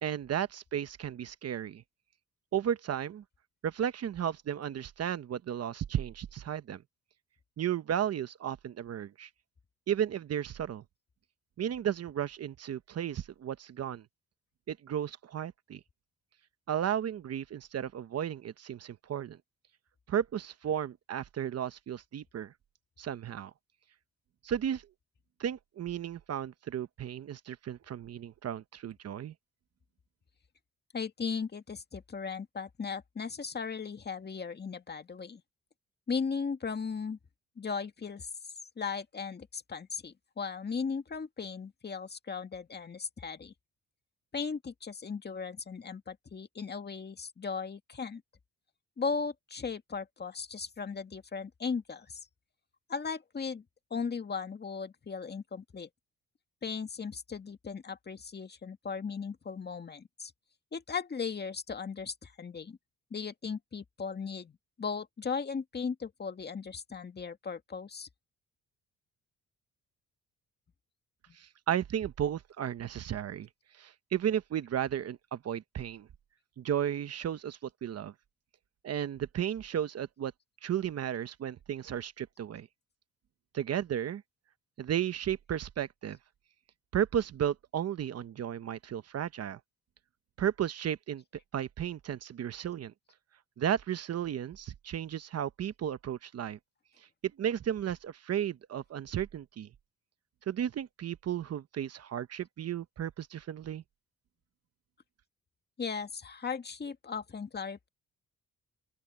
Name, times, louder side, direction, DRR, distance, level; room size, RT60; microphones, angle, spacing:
voice 1, 0.0-1.8 2.5-3.2 3.6-6.8 7.6-9.3 9.9-10.8 11.6-14.0 14.7-15.8 16.7-19.4 20.1-22.5 23.0-23.5 24.4-24.8 25.4-29.3 71.3-73.5 73.7-76.1 76.6-78.1 78.8-80.3 80.6-82.7 83.5-84.2 84.8-86.2 86.9-89.6 90.4-91.2 91.5-92.9 93.6-96.6 97.4-99.7 100.5-103.8, right 9 dB, 55° right, 1.0 m, -34 dB
voice 2, 30.9-35.4 36.1-37.2 37.6-38.3 38.8-43.5 44.3-48.2 49.0-52.3 52.9-53.6 53.9-55.9 56.6-60.3 60.7-62.8 63.1-68.1 71.3-71.4 105.8-107.9, left 5 dB, 35° left, 2.0 m, -37 dB
open air
cardioid pair, 90°, 30 cm